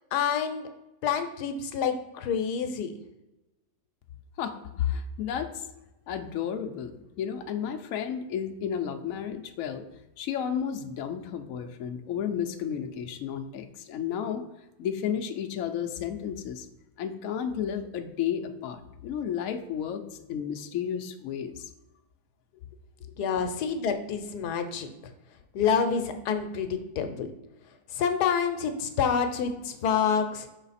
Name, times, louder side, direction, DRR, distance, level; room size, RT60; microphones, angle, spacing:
voice 1, 0.1-0.7 1.0-3.0 23.2-24.9 25.5-27.3 27.9-30.5, left 7 dB, 85° left, 7 dB, 1.2 m, -27 dB
voice 2, 4.4-5.7 6.1-9.8 10.2-14.4 14.8-16.7 17.0-20.0 20.3-21.7, left 8 dB, 65° left, 5 dB, 0.9 m, -32 dB
5.8 x 4.0 x 4.0 m, 0.97 s
omnidirectional pair, 1.7 m